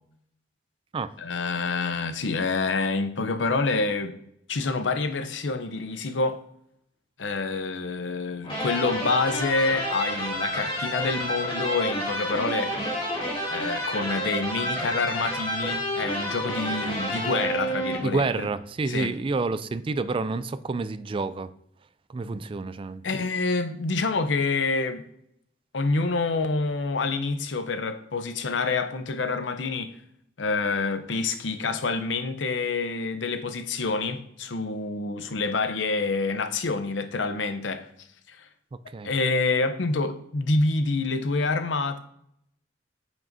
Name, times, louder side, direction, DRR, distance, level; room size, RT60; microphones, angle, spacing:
voice 1, 1.2-4.1 4.5-6.4 7.2-12.8 13.5-18.5 18.9-19.1 23.0-25.0 25.7-29.9 30.4-37.9 38.3-38.4 39.0-42.0, left 3 dB, 85° left, 0.7 m, -27 dB
sound 1, 8.4-18.4, equal, 30° left, 2.3 m, -30 dB
voice 2, 18.0-21.5 22.1-23.0 38.9-39.1, right 3 dB, 30° right, 0.3 m, -28 dB
8.8 x 6.0 x 2.7 m
head